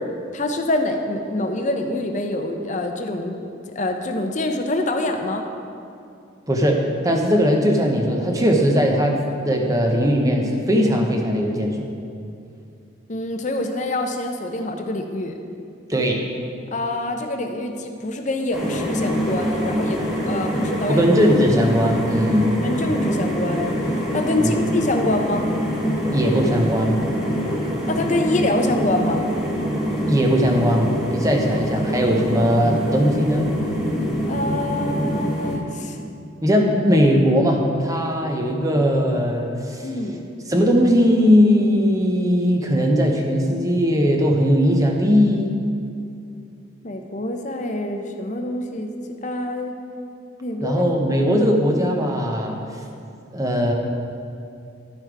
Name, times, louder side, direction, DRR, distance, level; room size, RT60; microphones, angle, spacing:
voice 1, 0.0-3.4 3.7-5.4 13.1-15.3 16.7-21.1 22.6-25.5 27.9-29.2 34.3-36.0 39.8-40.3 46.8-49.8 50.4-50.8, left 1 dB, 40° left, 5 dB, 0.7 m, -25 dB
voice 2, 6.5-9.2 9.4-11.9 15.9-16.2 20.9-22.5 24.4-24.5 26.1-27.0 30.0-33.5 36.4-39.9 40.5-45.5 50.6-52.6 53.3-53.7, equal, 20° right, 1 dB, 0.9 m, -19 dB
sound 1, 18.5-35.6, equal, ahead, 1.4 m, -25 dB
11.5 x 5.7 x 4.6 m, 2.6 s
head